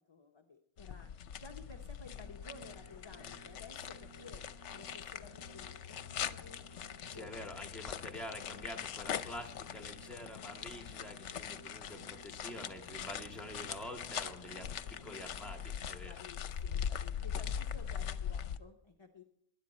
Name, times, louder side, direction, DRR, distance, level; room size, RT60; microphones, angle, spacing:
voice 1, 0.1-4.4 4.7-6.6 7.1-7.3 16.0-19.2, left 3 dB, 25° left, 4 dB, 0.8 m, -54 dB
sound 1, 0.8-18.6, left 8 dB, 70° left, 1.0 m, -42 dB
sound 2, 2.2-15.7, right 1 dB, 30° right, 2.2 m, -58 dB
voice 2, 7.1-16.2, left 1 dB, ahead, 3 dB, 1.6 m, -47 dB
19.5 x 11.0 x 4.2 m, 0.74 s
omnidirectional pair, 1.3 m